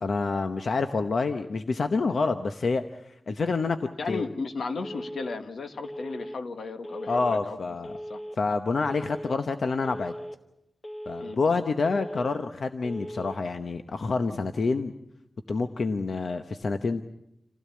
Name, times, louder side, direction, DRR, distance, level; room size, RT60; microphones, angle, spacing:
voice 1, 0.0-4.3 7.1-7.9 8.4-10.1 11.1-14.9 15.5-17.0, left 4 dB, 55° left, 7 dB, 0.9 m, -27 dB
voice 2, 4.0-7.6 7.9-8.2 11.2-11.4, left 4 dB, 75° left, 7 dB, 1.7 m, -35 dB
Telephone, 4.8-5.4 5.8-6.4 6.8-7.4 7.8-8.4 8.8-9.4 9.8-10.4 10.8-11.4 11.8-12.4 12.8-13.4, equal, 25° left, 1.2 m, -39 dB
28.0 x 16.0 x 8.5 m, 0.86 s
wide cardioid pair, 165°, 0 cm